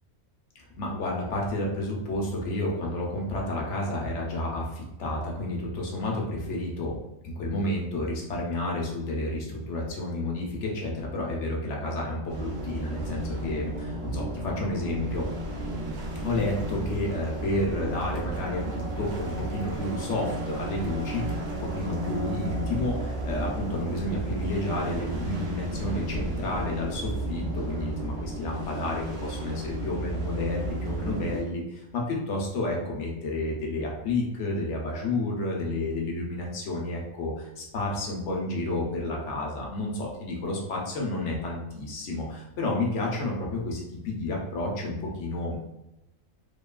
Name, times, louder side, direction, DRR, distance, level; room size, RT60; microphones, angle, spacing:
voice 1, 0.6-6.9 7.2-15.3 16.2-45.6, left 2 dB, 70° left, -1 dB, 0.9 m, -31 dB
sound 1, 12.3-31.4, right 1 dB, 70° right, 0.9 m, -33 dB
3.0 x 2.2 x 2.2 m, 0.91 s
omnidirectional pair, 1.4 m